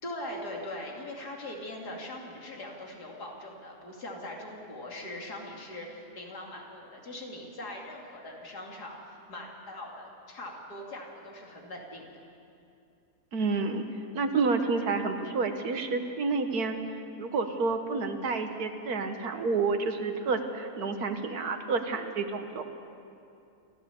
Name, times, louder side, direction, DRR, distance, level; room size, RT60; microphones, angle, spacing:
voice 1, 0.0-12.1, left 1 dB, 85° left, -1 dB, 3.3 m, -41 dB
voice 2, 13.3-13.8 14.1-16.8 17.2-22.6, right 4 dB, 75° right, 6 dB, 1.8 m, -29 dB
28.5 x 13.5 x 7.0 m, 2.6 s
omnidirectional pair, 1.7 m